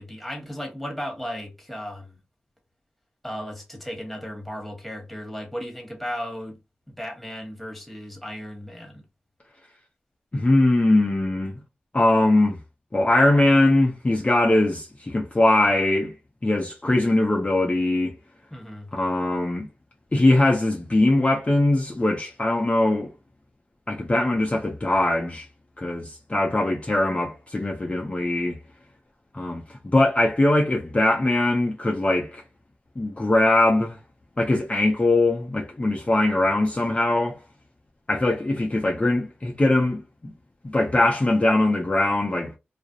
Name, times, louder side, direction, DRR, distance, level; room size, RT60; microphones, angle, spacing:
voice 1, 0.0-2.2 3.2-6.6 6.9-9.0 18.5-18.9, equal, ahead, 1.2 m, -35 dB
voice 2, 10.3-11.5 11.9-12.6 12.9-16.1 16.4-18.1 18.9-19.7 20.1-23.1 23.9-25.5 25.8-28.6 29.3-32.4 33.0-34.0 34.4-37.4 38.1-40.3 40.6-42.5, left 2 dB, 35° left, 0.5 m, -21 dB
2.4 x 2.0 x 2.7 m
cardioid pair, 40°, 4 cm